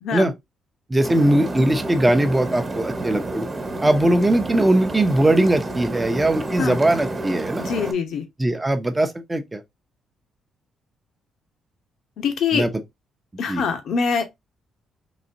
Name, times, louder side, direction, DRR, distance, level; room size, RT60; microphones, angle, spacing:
voice 1, 0.9-3.5 3.8-7.7 8.4-9.6 12.5-12.7 13.5-13.6, right 1 dB, 15° right, 0.7 m, -20 dB
sound 1, 1.0-7.9, right 2 dB, 35° right, 1.2 m, -30 dB
voice 2, 7.6-8.2 12.2-12.7 13.4-14.2, left 6 dB, 70° left, 0.9 m, -24 dB
4.0 x 2.7 x 2.7 m
cardioid pair, 90°, 0 cm